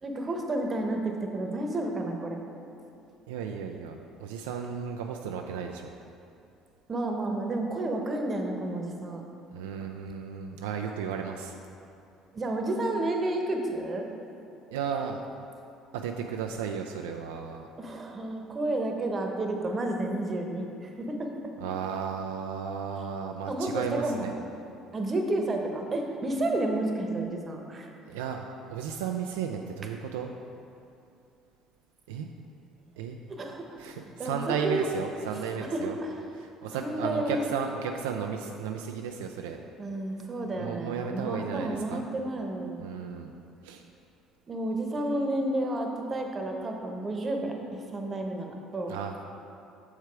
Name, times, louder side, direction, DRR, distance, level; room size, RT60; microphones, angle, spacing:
voice 1, 0.0-2.4 6.9-9.2 12.3-14.0 17.8-21.3 23.5-24.2 24.9-27.9 33.3-33.8 34.2-34.9 35.7-36.2 36.7-37.4 39.8-42.9 44.5-49.0, right 1 dB, 35° right, 2 dB, 1.0 m, -31 dB
voice 2, 3.3-5.9 9.5-11.6 14.7-15.2 15.9-17.7 21.6-24.3 28.1-30.3 32.1-32.3 33.0-33.2 33.8-36.0 36.4-39.6 40.5-42.0 42.8-43.3 43.6-43.8 48.9-49.2, right 7 dB, 80° right, 3 dB, 0.3 m, -34 dB
6.4 x 4.8 x 4.6 m, 2.6 s
hypercardioid pair, 65°, 0 cm